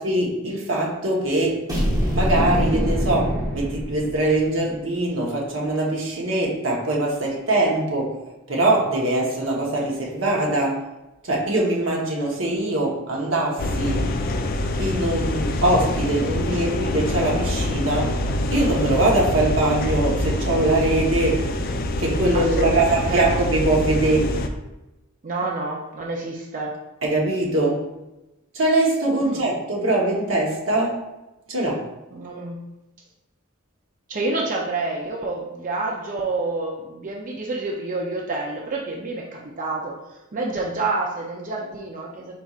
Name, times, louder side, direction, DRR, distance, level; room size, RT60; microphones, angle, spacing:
voice 1, 0.0-1.6 2.1-8.2 8.5-10.8 11.2-14.1 14.8-18.1 18.5-21.5 22.0-24.3 27.0-27.8 28.5-31.0 31.5-31.8, right 2 dB, 70° right, -2 dB, 1.0 m, -22 dB
sound 1, 1.7-4.5, equal, 20° right, 0.9 m, -24 dB
sound 2, 13.6-24.5, left 1 dB, 45° left, 0.4 m, -25 dB
voice 2, 22.3-23.4 25.2-26.8 29.2-29.5 32.1-32.6 34.1-40.0 40.3-42.4, right 3 dB, 40° right, -1 dB, 0.5 m, -28 dB
4.5 x 4.1 x 2.4 m, 0.98 s
head